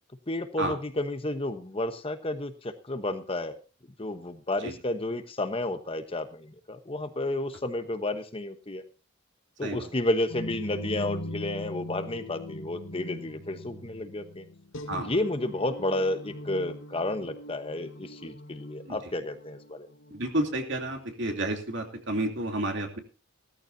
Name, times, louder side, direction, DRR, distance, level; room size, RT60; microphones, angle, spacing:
voice 1, 0.3-3.6 4.0-8.8 9.6-14.4 14.9-19.9, left 1 dB, 25° left, 8 dB, 1.1 m, -31 dB
sound 1, 10.3-20.2, left 1 dB, 70° left, 1.5 m, -41 dB
voice 2, 20.1-23.0, right 1 dB, 60° right, 4 dB, 2.8 m, -30 dB
16.5 x 13.5 x 2.7 m, 0.35 s
head